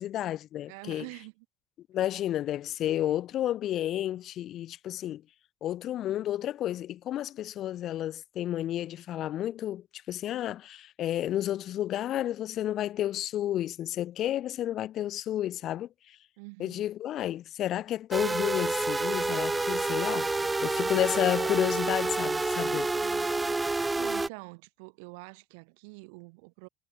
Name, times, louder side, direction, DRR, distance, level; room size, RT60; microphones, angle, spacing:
voice 1, 0.0-1.1 1.9-5.2 5.6-16.2 16.6-20.3 20.6-22.9, left 12 dB, 55° left, 0.8 m, -31 dB
voice 2, 0.7-1.5 16.4-16.9 22.8-23.4 24.0-26.7, right 33 dB, 75° right, 3.6 m, -46 dB
sound 1, 18.1-24.3, right 3 dB, 15° right, 0.5 m, -28 dB
hypercardioid pair, 70°, 0 cm